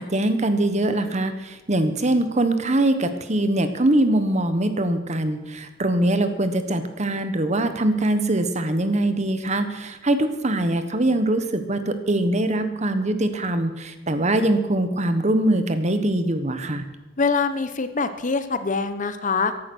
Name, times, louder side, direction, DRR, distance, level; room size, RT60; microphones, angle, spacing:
voice 1, 0.0-16.8, right 1 dB, 40° right, 9 dB, 1.3 m, -22 dB
voice 2, 17.2-19.5, left 4 dB, 45° left, 11 dB, 0.9 m, -24 dB
14.5 x 11.5 x 6.2 m, 1.0 s
head